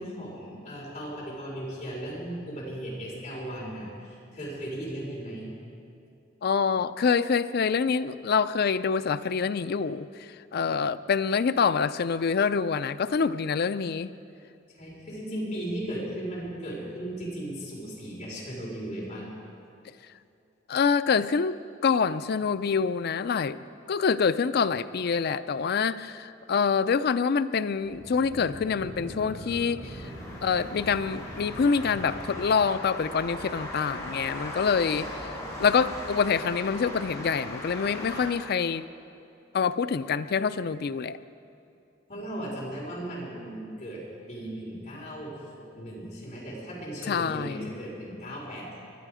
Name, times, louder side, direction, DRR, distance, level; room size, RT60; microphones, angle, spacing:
voice 1, 0.0-5.5 14.7-19.3 42.1-44.0 44.3-48.8, right 1 dB, 35° left, -5 dB, 4.7 m, -36 dB
voice 2, 6.4-14.1 20.7-30.0 30.4-35.3 35.6-38.9 39.5-41.2 47.1-47.6, left 5 dB, 55° left, 13 dB, 0.4 m, -26 dB
sound 1, 27.8-33.1, equal, 45° right, 3.0 m, -43 dB
sound 2, 29.7-38.3, left 1 dB, 20° left, 4.1 m, -39 dB
21.0 x 11.5 x 4.9 m, 2.6 s
head